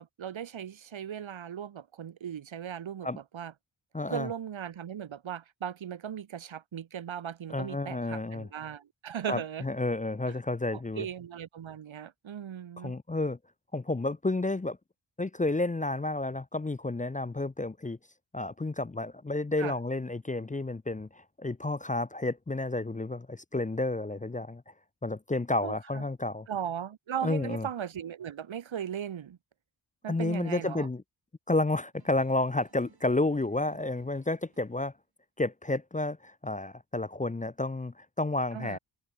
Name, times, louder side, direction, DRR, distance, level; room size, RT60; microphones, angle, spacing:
voice 1, 0.0-3.1 3.3-3.5 4.1-9.6 10.7-13.0 19.6-19.7 25.6-26.0 26.5-29.4 30.0-30.9 38.5-38.8, right 9 dB, 85° right, 1.3 m, -38 dB
voice 2, 3.9-4.3 7.5-8.5 9.3-11.1 12.8-13.4 13.7-14.8 15.2-18.0 18.3-24.7 25.0-26.5 27.2-27.7 30.1-31.0 31.5-34.9 35.4-38.8, left 2 dB, 15° left, 0.6 m, -31 dB
sound 1, 31.9-34.8, right 5 dB, 55° right, 3.5 m, -61 dB
wide cardioid pair, 135°, 45 cm